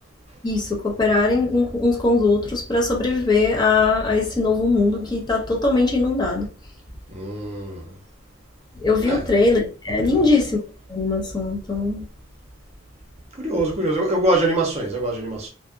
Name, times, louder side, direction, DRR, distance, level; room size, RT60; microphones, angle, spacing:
voice 1, 0.4-6.5 8.8-10.6 10.9-12.0, left 3 dB, 20° left, 0.5 m, -20 dB
voice 2, 7.1-7.9 9.0-9.3 10.0-10.3 13.4-15.5, right 1 dB, 30° right, 0.7 m, -24 dB
2.7 x 2.3 x 2.4 m
head